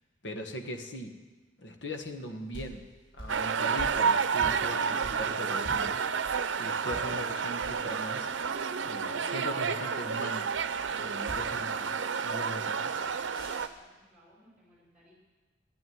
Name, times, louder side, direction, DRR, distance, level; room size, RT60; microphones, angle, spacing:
voice 1, 0.2-1.2 1.6-2.8 3.1-8.3 8.8-10.5 10.9-12.0 12.2-12.9, equal, 70° left, 5 dB, 1.5 m, -40 dB
sound 1, 2.0-6.5 6.9-7.1 7.5-9.0 10.5-11.7 12.9-13.8, right 1 dB, 25° left, 6.1 m, -46 dB
sound 2, 3.3-13.7, right 6 dB, 90° right, 0.7 m, -30 dB
voice 2, 12.6-15.1, equal, 5° right, -4 dB, 5.7 m, -63 dB
14.5 x 10.5 x 9.4 m, 1.2 s
head